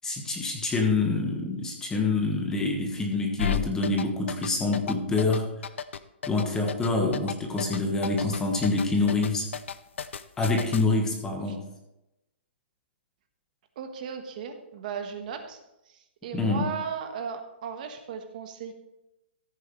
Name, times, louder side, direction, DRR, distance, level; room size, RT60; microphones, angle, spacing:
voice 1, 0.0-5.5 6.3-9.5 10.4-11.6 16.3-16.7, left 3 dB, 10° left, 2 dB, 1.3 m, -26 dB
sound 1, 3.4-10.8, left 8 dB, 80° left, 0.7 m, -32 dB
voice 2, 13.8-15.6 15.9-18.7, right 7 dB, 45° right, 6 dB, 1.3 m, -36 dB
14.5 x 9.0 x 3.2 m, 0.89 s
hypercardioid pair, 160°, 6 cm